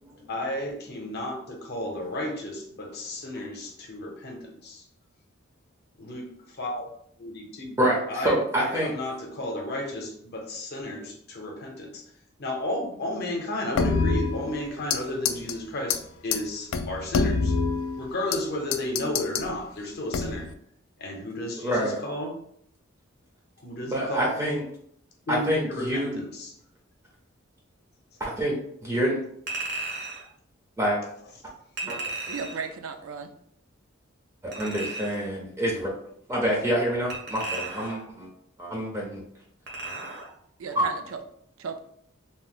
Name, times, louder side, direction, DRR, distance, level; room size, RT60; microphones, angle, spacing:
voice 1, 0.3-4.8 6.0-6.3 6.6-6.9 7.2-7.7 8.1-12.0 12.4-17.5 18.0-20.5 21.0-22.4 23.6-24.3 25.3-26.5, left 1 dB, 50° left, 1 dB, 0.7 m, -33 dB
voice 2, 7.8-8.9 21.6-22.0 23.9-24.6 25.3-26.2 28.2-29.2 30.8-31.0 31.9-32.0 34.4-35.9 36.3-38.3 38.6-39.2 40.7-40.9, equal, 15° right, -2 dB, 0.5 m, -27 dB
sound 1, 13.8-15.0 15.2-15.5 15.9-16.0 16.3-16.4 16.7-18.4 18.7-19.5 20.1-20.5, left 4 dB, 85° left, 0.3 m, -26 dB
Chink clink, 29.5-30.2 31.8-32.7 34.5-35.3 37.1-38.1 39.7-40.3 40.7-40.8, right 2 dB, 55° right, 0.7 m, -35 dB
voice 3, 32.3-33.3 40.6-41.2 41.6-41.8, right 5 dB, 85° right, 7 dB, 0.4 m, -35 dB
2.7 x 2.0 x 3.5 m, 0.67 s
head